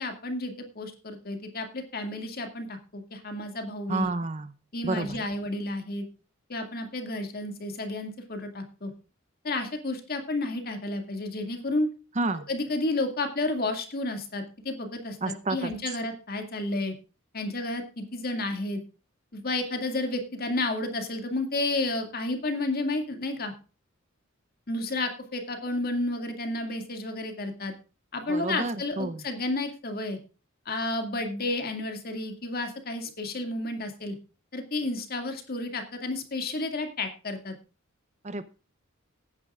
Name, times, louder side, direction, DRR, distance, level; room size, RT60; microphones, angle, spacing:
voice 1, 0.0-4.1 4.7-6.0 6.5-8.9 9.4-11.9 12.5-16.9 17.3-18.8 19.3-23.5 24.7-27.7 28.1-30.2 30.7-34.2 34.5-37.5, left 2 dB, 50° left, 6 dB, 2.2 m, -31 dB
voice 2, 3.9-4.5 4.8-5.2 12.2-12.5 15.2-15.7 28.3-29.2 38.2-38.4, right 2 dB, 35° right, 13 dB, 0.7 m, -30 dB
18.5 x 9.6 x 2.4 m, 0.33 s
head